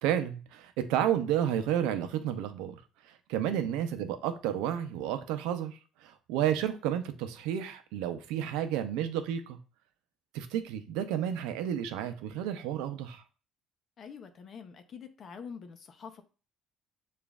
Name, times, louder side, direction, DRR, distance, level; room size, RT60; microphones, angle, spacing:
voice 1, 0.0-2.7 3.1-9.6 10.3-13.2, right 10 dB, 85° right, 0.5 m, -31 dB
voice 2, 14.0-16.2, left 6 dB, 45° left, 0.6 m, -46 dB
6.8 x 2.5 x 2.4 m
cardioid pair, 95°, 0 cm